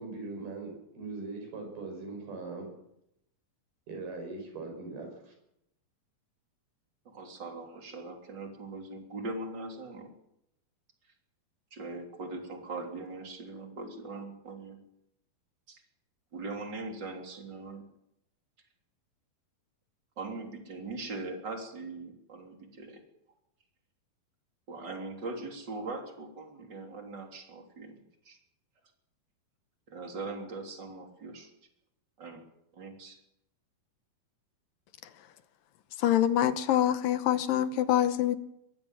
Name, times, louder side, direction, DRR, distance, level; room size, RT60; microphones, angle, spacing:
voice 1, 0.0-2.7 3.9-5.3, right 3 dB, 90° right, 4 dB, 7.7 m, -40 dB
voice 2, 7.1-10.1 11.7-14.8 15.7-15.8 16.3-17.8 20.2-23.0 24.7-28.4 29.9-31.5 32.2-32.4 32.7-33.2, right 3 dB, 30° right, 3 dB, 3.8 m, -41 dB
voice 3, 36.0-38.4, left 11 dB, 75° left, 11 dB, 2.6 m, -25 dB
22.5 x 16.0 x 7.6 m, 0.80 s
omnidirectional pair, 4.2 m